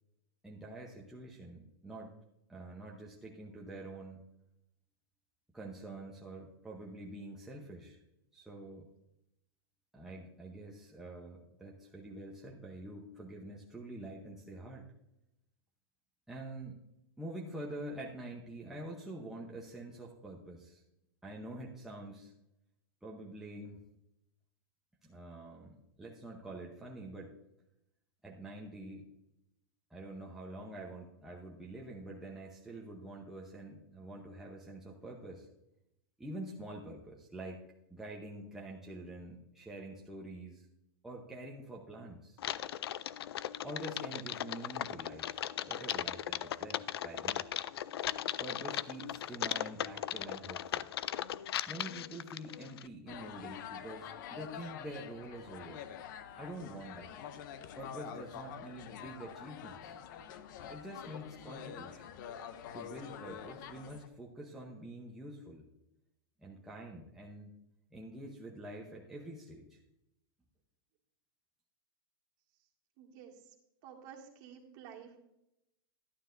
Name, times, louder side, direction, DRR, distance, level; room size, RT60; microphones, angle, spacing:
voice 1, 0.4-2.2 2.5-4.3 5.5-8.0 8.3-8.9 9.9-14.9 16.3-16.8 17.2-20.8 21.2-22.3 23.0-23.8 25.0-27.3 28.2-29.1 29.9-35.5 36.2-37.6 37.9-40.7 41.0-42.4 43.6-45.3 45.7-47.5 48.4-50.9 51.7-55.9 56.4-57.1 57.8-60.0 60.7-62.1 62.7-65.7 66.4-67.6 67.9-69.8, right 1 dB, 5° right, -3 dB, 0.8 m, -46 dB
Typing, 42.4-52.9, left 11 dB, 90° left, 0.4 m, -38 dB
sound 1, 53.1-64.1, left 9 dB, 55° left, 0.7 m, -47 dB
voice 2, 73.0-73.5 73.8-75.2, right 8 dB, 40° right, -1 dB, 2.0 m, -51 dB
11.5 x 9.8 x 2.6 m, 0.85 s
supercardioid pair, 150°, 13 cm